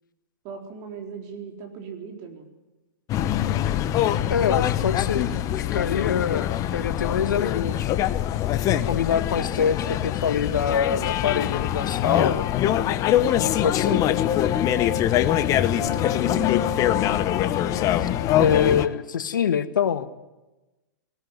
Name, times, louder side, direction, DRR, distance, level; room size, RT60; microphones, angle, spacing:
voice 1, 0.4-2.5 15.6-16.6, right 6 dB, 45° right, 2 dB, 4.1 m, -39 dB
sound 1, 3.1-18.9, left 11 dB, 35° left, 1.1 m, -23 dB
voice 2, 4.3-5.3 5.6-7.9 8.7-12.5 13.3-14.0 18.0-18.1 18.3-20.1, left 7 dB, 80° left, 11 dB, 1.4 m, -25 dB
19.0 x 17.0 x 9.6 m, 1.1 s
hypercardioid pair, 115°, 11 cm